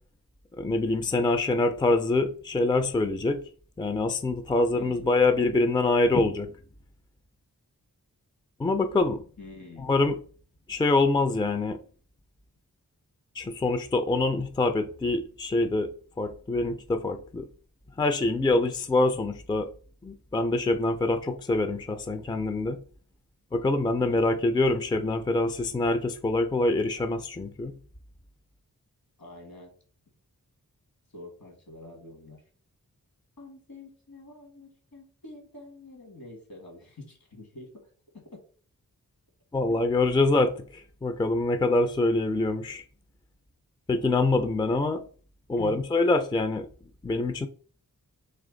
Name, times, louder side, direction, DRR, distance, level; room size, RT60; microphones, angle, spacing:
voice 1, 0.6-3.4 3.8-6.5 8.6-9.2 9.8-10.2 10.7-11.8 13.4-15.9 16.2-17.5 18.0-19.7 20.0-22.8 23.5-27.7 39.5-42.8 43.9-45.0 45.5-46.7 47.0-47.5, left 2 dB, 15° left, 0.4 m, -25 dB
voice 2, 4.7-5.2 9.4-9.9 24.1-24.4 29.2-29.7 31.1-32.4 33.4-37.9 38.1-38.4 45.6-45.8, left 3 dB, 70° left, 1.8 m, -46 dB
3.3 x 3.0 x 3.8 m
cardioid pair, 40°, 37 cm